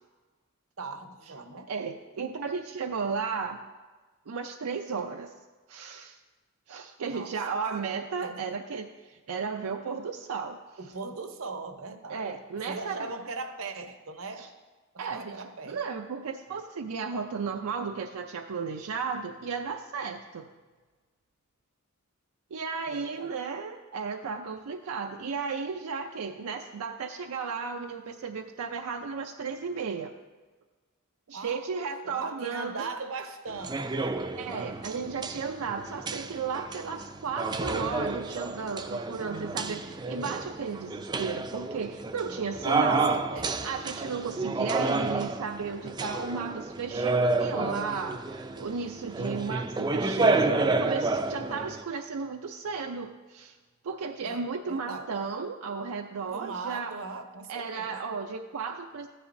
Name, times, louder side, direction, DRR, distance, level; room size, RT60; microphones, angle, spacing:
voice 1, 0.8-1.7 7.1-7.3 8.2-8.5 10.8-12.4 12.7-14.4 14.9-15.8 22.9-23.4 31.3-34.2 42.6-43.7 54.2-55.1 56.2-58.1, right 4 dB, 70° right, 7 dB, 0.8 m, -39 dB
voice 2, 1.7-3.6 4.3-5.3 5.7-6.2 6.7-10.6 12.1-13.1 14.4-14.5 15.0-20.5 22.5-30.1 31.3-32.9 34.4-43.2 43.6-53.6 53.8-56.9 57.5-59.1, right 5 dB, 90° right, 4 dB, 0.5 m, -34 dB
sound 1, 33.5-51.8, right 3 dB, 20° right, 0.4 m, -30 dB
14.0 x 10.0 x 2.6 m, 1.3 s
head